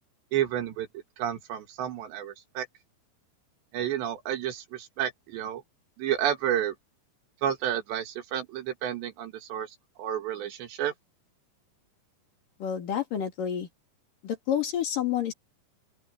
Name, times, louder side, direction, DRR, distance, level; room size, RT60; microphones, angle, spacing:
voice 1, 0.3-0.9 1.2-2.7 3.7-5.6 6.0-6.8 7.4-10.9, right 10 dB, 75° right, 4.1 m, -31 dB
voice 2, 12.6-13.7 14.2-15.3, left 9 dB, 55° left, 3.8 m, -29 dB
open air
omnidirectional pair, 5.1 m